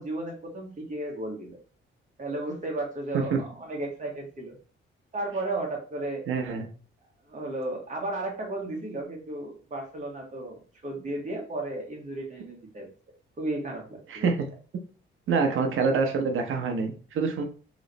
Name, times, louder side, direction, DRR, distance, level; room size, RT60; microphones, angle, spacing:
voice 1, 0.0-1.6 2.2-4.6 5.1-6.3 7.3-12.9 13.4-14.3, right 2 dB, 35° right, 0 dB, 1.5 m, -34 dB
voice 2, 6.3-6.7 14.1-14.3 15.3-17.4, right 5 dB, 75° right, 3 dB, 0.9 m, -26 dB
3.1 x 3.1 x 4.0 m, 0.38 s
cardioid pair, 120°, 21 cm